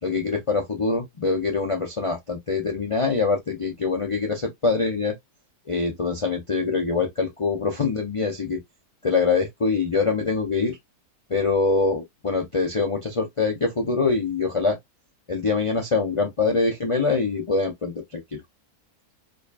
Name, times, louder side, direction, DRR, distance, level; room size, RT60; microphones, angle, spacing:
voice 1, 0.0-5.2 5.7-8.6 9.0-10.8 11.3-14.8 15.3-18.4, left 4 dB, 45° left, 0.4 m, -24 dB
4.9 x 2.3 x 2.4 m
omnidirectional pair, 1.6 m